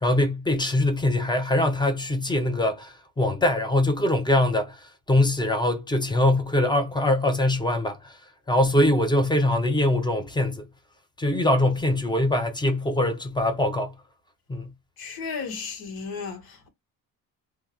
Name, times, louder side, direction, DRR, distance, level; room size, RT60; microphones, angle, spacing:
voice 1, 0.0-8.1 8.5-10.7 11.2-13.9 14.5-14.7, left 1 dB, 10° left, 0.7 m, -23 dB
voice 2, 15.0-16.7, left 5 dB, 65° left, 1.4 m, -34 dB
2.9 x 2.2 x 3.6 m
cardioid pair, 125°, 39 cm